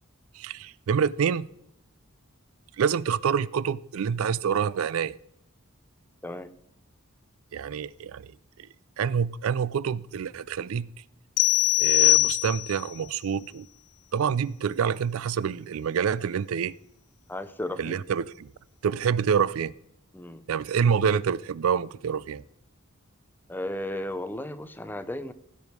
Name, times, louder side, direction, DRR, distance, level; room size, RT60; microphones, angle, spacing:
voice 1, 0.3-1.5 2.8-5.2 7.5-8.3 9.0-10.9 11.8-13.7 14.1-16.7 17.8-18.5 18.8-19.7 20.5-22.4, right 7 dB, 75° right, 0.4 m, -27 dB
sound 1, 11.4-12.9, left 18 dB, 80° left, 0.3 m, -21 dB
voice 2, 17.3-18.0 20.1-20.5 23.5-25.3, left 1 dB, 10° left, 0.6 m, -34 dB
16.0 x 7.2 x 4.7 m
head